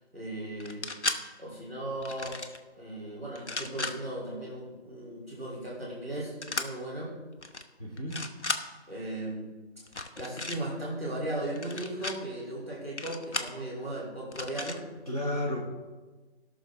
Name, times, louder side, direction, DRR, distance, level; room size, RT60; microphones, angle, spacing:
voice 1, 0.1-0.9 1.4-2.4 2.7-7.1 8.9-9.5 10.2-14.8, right 1 dB, 15° right, -5 dB, 2.7 m, -37 dB
sound 1, 0.6-1.2 2.0-2.6 3.3-3.9 6.4-6.7 7.4-7.6 8.0-8.6 9.9-10.6 11.6-12.2 13.0-13.5 14.3-14.8, left 3 dB, 80° left, 1.1 m, -34 dB
voice 2, 7.8-8.3 15.1-15.6, left 1 dB, 35° left, -6 dB, 2.0 m, -32 dB
17.0 x 6.4 x 3.5 m, 1.3 s
figure-of-eight pair, 175°, 34 cm